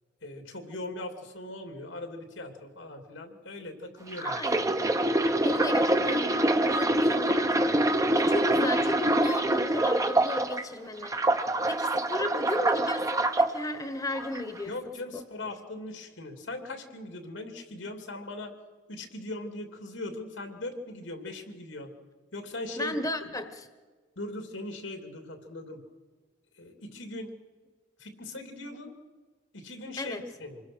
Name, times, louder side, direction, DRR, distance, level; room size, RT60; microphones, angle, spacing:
voice 1, 0.2-4.4 14.7-18.6 18.9-21.9 22.3-23.3 24.2-25.8 26.6-27.3 28.0-28.9 29.5-30.6, left 2 dB, 85° left, 5 dB, 3.0 m, -40 dB
sound 1, 4.1-10.6 11.0-13.5 14.2-14.4, right 1 dB, 15° right, 0.9 m, -25 dB
voice 2, 4.2-5.0 5.4-11.2 11.6-14.7 15.1-15.2 22.8-23.7 30.0-30.2, left 2 dB, 20° left, 8 dB, 1.2 m, -35 dB
26.0 x 21.0 x 6.3 m, 1.4 s
head